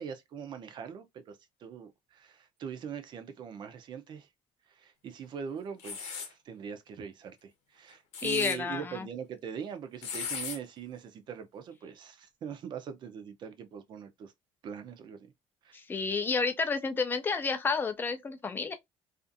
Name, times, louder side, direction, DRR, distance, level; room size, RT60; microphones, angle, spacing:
voice 1, 0.0-4.3 4.8-14.3 14.6-15.3 15.6-15.8, right 7 dB, 40° right, 0.5 m, -42 dB
sound 1, 5.8-6.3 7.9-8.6 10.0-10.6, left 6 dB, 75° left, 0.8 m, -37 dB
voice 2, 8.2-9.1 15.7-18.7, left 4 dB, 15° left, 0.4 m, -30 dB
2.5 x 2.4 x 2.5 m
cardioid pair, 150°, 12 cm